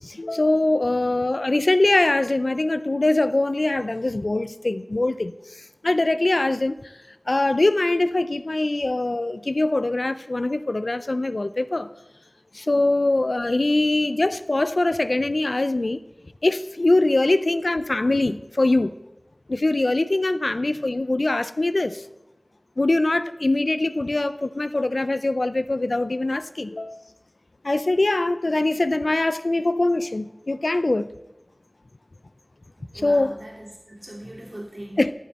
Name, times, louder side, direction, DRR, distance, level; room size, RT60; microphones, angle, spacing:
voice 1, 0.0-6.8 7.3-11.9 12.5-16.0 16.4-19.0 19.5-22.0 22.8-27.0 27.6-31.1 33.0-33.3 35.0-35.1, left 2 dB, 75° left, 14 dB, 0.4 m, -22 dB
voice 2, 32.8-35.0, right 1 dB, 50° right, -3 dB, 3.0 m, -40 dB
13.0 x 7.5 x 4.1 m, 0.95 s
wide cardioid pair, 45°, 0 cm